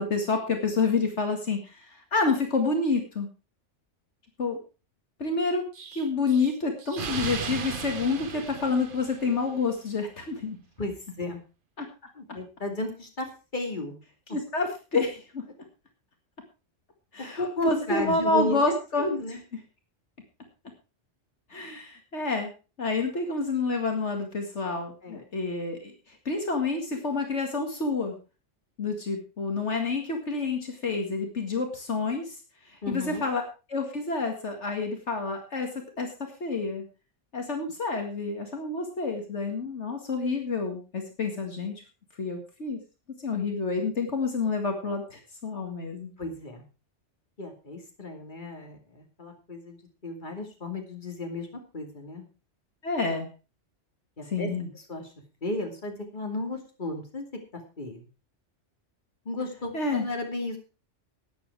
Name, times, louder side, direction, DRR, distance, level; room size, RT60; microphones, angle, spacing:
voice 1, 0.0-3.3 4.4-4.6 5.2-5.6 5.9-10.6 11.8-11.9 14.3-15.4 17.1-19.1 21.5-22.5 22.8-28.2 28.8-32.4 32.7-33.4 33.7-35.7 36.0-36.1 36.4-36.8 37.3-41.7 42.2-42.8 43.2-46.1 52.8-53.3 54.3-54.7 59.7-60.0, left 3 dB, 70° left, 4 dB, 2.3 m, -28 dB
Explosion, 5.7-9.6, right 6 dB, 50° right, 1.0 m, -36 dB
voice 2, 10.8-11.4 12.2-13.3 13.5-14.0 17.4-18.6 19.0-19.4 25.0-25.2 32.8-33.2 46.2-46.6 47.4-51.5 51.7-52.3 54.2-55.1 55.4-57.3 57.8-58.0 59.2-60.6, left 2 dB, 40° left, 3 dB, 2.8 m, -34 dB
13.0 x 9.7 x 4.7 m, 0.32 s
omnidirectional pair, 1.2 m